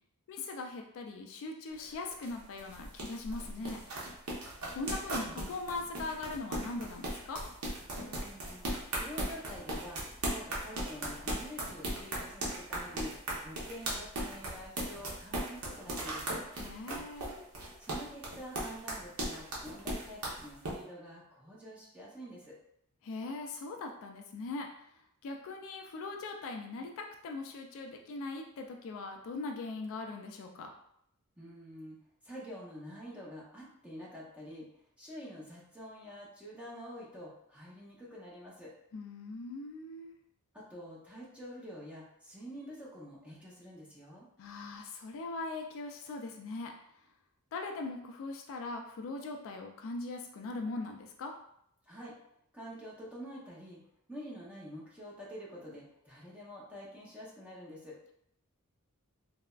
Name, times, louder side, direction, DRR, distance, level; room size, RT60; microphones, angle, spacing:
voice 1, 0.3-3.8 4.7-7.4 16.6-17.4 23.0-24.9 25.2-30.7 38.9-40.2 44.4-46.7 47.5-51.4, left 3 dB, 60° left, 3 dB, 0.3 m, -40 dB
sound 1, 1.7-20.7, right 1 dB, 70° right, 0.7 m, -37 dB
voice 2, 8.0-8.6 8.9-13.2 13.4-16.4 17.8-22.5 31.4-34.7 35.0-38.7 40.5-44.3 51.9-52.1 52.5-53.8 54.1-58.0, equal, 5° right, -6 dB, 0.7 m, -47 dB
3.2 x 2.0 x 2.3 m, 0.72 s
head